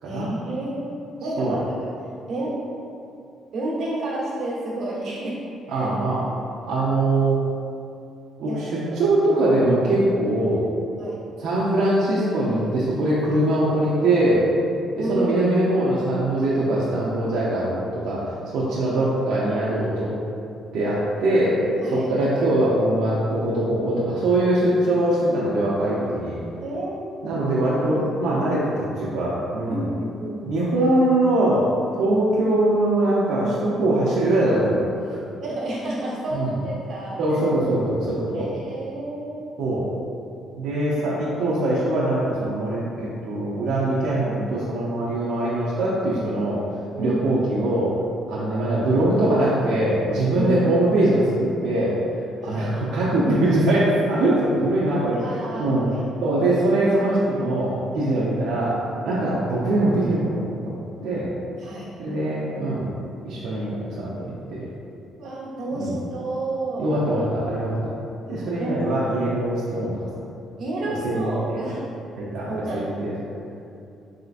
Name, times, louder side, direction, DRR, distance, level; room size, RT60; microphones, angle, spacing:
voice 1, 0.0-0.9 1.2-1.9 2.3-2.6 3.5-5.4 5.7-5.9 8.5-8.6 9.0-9.1 11.0-11.2 15.0-15.4 21.8-22.1 26.6-27.4 29.7-30.5 35.4-37.4 38.3-39.5 46.9-47.3 50.3-50.7 52.4-52.7 55.1-56.0 59.0-59.3 61.6-61.9 65.1-66.9 68.3-68.9 69.3-69.4 70.6-71.8 72.5-72.9, right 1 dB, 60° right, -6 dB, 1.2 m, -30 dB
voice 2, 5.7-6.2 6.7-7.4 8.4-10.7 11.4-14.4 15.0-20.1 20.7-21.6 21.9-26.4 27.2-29.9 30.4-31.6 32.0-35.2 36.3-36.6 37.2-38.5 39.6-39.9 40.6-46.6 47.0-47.9 48.3-51.9 52.4-55.8 56.2-61.3 62.0-62.9 63.2-64.7 65.7-65.9 66.8-67.9 68.3-70.1 70.9-71.6 72.2-73.1, right 1 dB, 75° right, -8 dB, 0.6 m, -22 dB
4.2 x 3.7 x 2.4 m, 2.6 s
cardioid pair, 100°, 0 cm